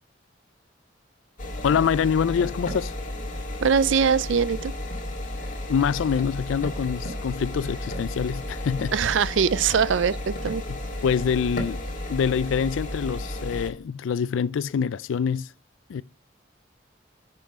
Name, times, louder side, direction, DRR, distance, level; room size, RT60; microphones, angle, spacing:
sound 1, 1.4-13.7, left 1 dB, 40° left, 1.8 m, -33 dB
voice 1, 1.6-2.9 5.7-8.9 10.7-15.5 15.9-16.0, left 7 dB, 85° left, 0.4 m, -25 dB
voice 2, 3.6-4.7 8.9-10.6, right 6 dB, 75° right, 0.4 m, -22 dB
10.5 x 5.8 x 4.8 m
head